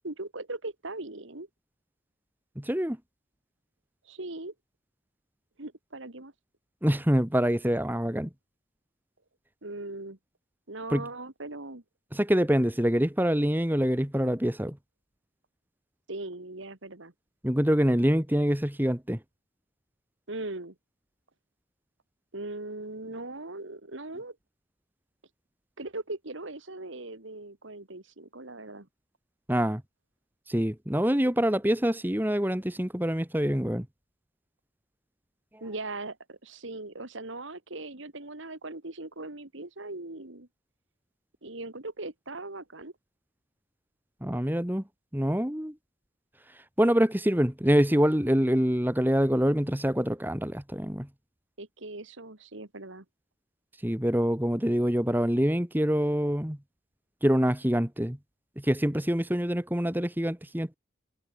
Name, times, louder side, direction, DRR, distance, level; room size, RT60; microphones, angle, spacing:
voice 1, 0.0-1.5 4.0-4.5 5.6-6.3 9.6-10.2 10.7-11.8 16.1-17.1 20.3-20.8 22.3-24.4 25.8-28.9 35.6-40.5 41.4-42.9 51.6-53.1, right 2 dB, 65° right, 2.2 m, -39 dB
voice 2, 2.6-3.0 6.8-8.3 10.9-11.0 12.1-14.8 17.4-19.2 29.5-29.8 30.5-33.8 44.2-44.8 45.1-45.7 46.8-51.1 53.8-56.6 57.2-58.2 58.6-60.8, equal, 10° right, 1.5 m, -25 dB
head